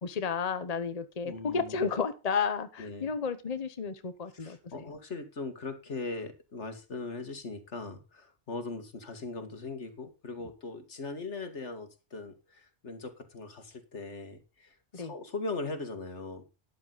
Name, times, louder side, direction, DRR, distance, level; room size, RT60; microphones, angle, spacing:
voice 1, 0.0-4.6 14.9-15.1, left 5 dB, 35° left, 1.0 m, -32 dB
voice 2, 1.2-1.9 2.8-3.1 4.3-16.4, left 3 dB, 80° left, 2.3 m, -40 dB
12.5 x 10.5 x 4.1 m
omnidirectional pair, 1.2 m